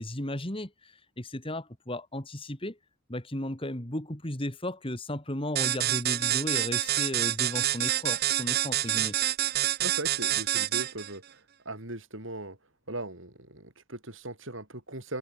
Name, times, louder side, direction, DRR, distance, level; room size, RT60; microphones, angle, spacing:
voice 1, 0.0-2.8 3.1-9.2, left 1 dB, 25° left, 2.9 m, -35 dB
sound 1, 5.6-11.1, right 13 dB, 45° right, 0.9 m, -27 dB
voice 2, 9.8-12.6 12.9-15.2, right 2 dB, 60° right, 5.7 m, -39 dB
head